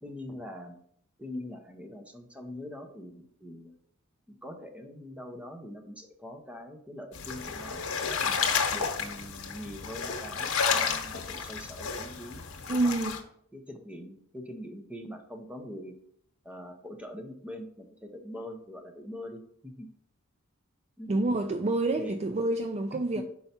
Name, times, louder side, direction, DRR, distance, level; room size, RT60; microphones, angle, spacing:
voice 1, 0.0-0.8 1.2-3.8 4.3-7.8 8.1-13.0 13.5-15.9 16.4-19.9 21.0-21.2 22.0-22.2 23.1-23.2, left 1 dB, 5° right, 0.7 m, -43 dB
sound 1, 7.1-13.2, left 6 dB, 90° left, 1.0 m, -31 dB
sound 2, 10.7-11.4, left 4 dB, 55° left, 0.6 m, -44 dB
voice 2, 12.7-13.2 21.1-23.2, right 2 dB, 30° right, 0.4 m, -28 dB
5.5 x 4.6 x 4.2 m
head